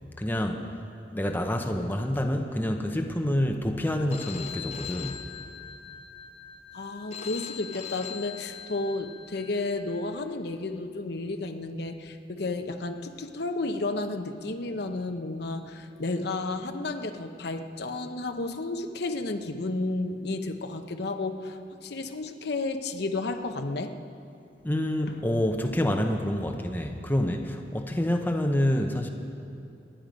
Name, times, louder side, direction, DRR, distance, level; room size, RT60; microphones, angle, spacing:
voice 1, 0.2-0.7 1.1-5.2 24.6-29.1, left 1 dB, 10° left, 3 dB, 0.8 m, -27 dB
Telephone, 4.1-10.1, left 8 dB, 40° left, 1.0 m, -41 dB
voice 2, 6.7-23.9 25.1-25.2, left 2 dB, 65° left, 6 dB, 0.9 m, -32 dB
25.0 x 10.5 x 5.2 m, 2.6 s
head